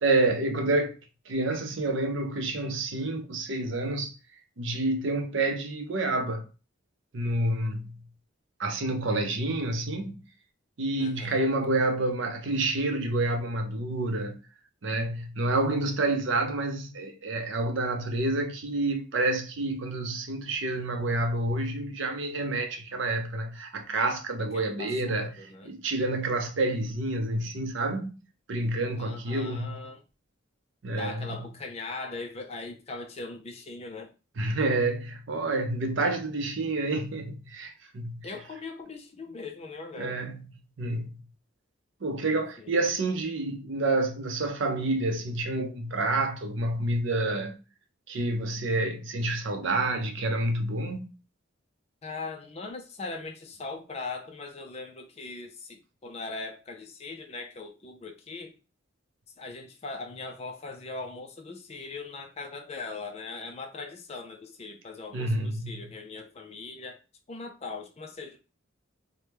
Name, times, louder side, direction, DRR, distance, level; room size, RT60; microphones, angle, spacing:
voice 1, 0.0-0.9 1.3-4.1 4.6-6.5 7.1-8.0 8.6-10.2 10.8-14.4 14.8-28.1 28.5-29.8 30.8-31.4 34.4-38.3 40.0-40.5 40.8-41.2 42.0-47.6 48.1-51.1 65.1-65.8, right 2 dB, 60° right, 0.6 m, -28 dB
voice 2, 11.0-11.4 24.5-25.7 29.0-30.0 31.0-34.1 38.2-40.3 42.3-42.7 52.0-58.6 59.4-67.0 67.3-68.4, left 3 dB, 30° left, 0.4 m, -40 dB
2.9 x 2.1 x 3.4 m
head